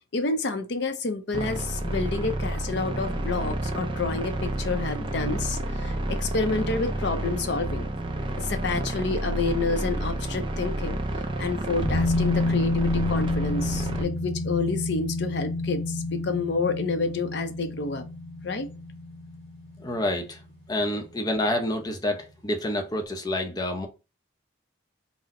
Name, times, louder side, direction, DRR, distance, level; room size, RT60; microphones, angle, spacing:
voice 1, 0.1-7.9 8.4-11.0 11.4-18.0 18.4-18.7, left 3 dB, 55° left, 0.6 m, -29 dB
sound 1, 1.3-14.0, right 1 dB, 25° right, 0.4 m, -30 dB
sound 2, 11.8-20.9 21.2-21.3, left 2 dB, 50° right, 1.4 m, -29 dB
voice 2, 19.8-20.4 20.7-23.9, left 1 dB, 20° left, 0.6 m, -28 dB
4.1 x 2.1 x 3.7 m
head